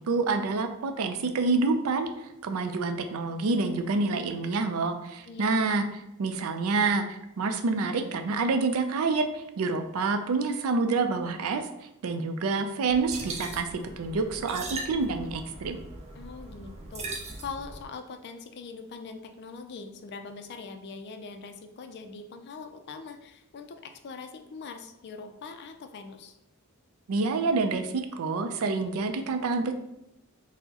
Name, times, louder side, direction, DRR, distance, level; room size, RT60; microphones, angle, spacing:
voice 1, 0.0-5.8 6.2-11.6 12.0-13.7 14.0-15.8 27.1-29.7, right 3 dB, 80° right, 7 dB, 0.4 m, -27 dB
voice 2, 5.3-5.8 16.1-17.0 17.4-26.4, left 4 dB, 50° left, 7 dB, 0.3 m, -42 dB
sound 1, 12.9-17.8, right 2 dB, 30° right, 0.5 m, -40 dB
4.4 x 2.1 x 2.8 m, 0.89 s
head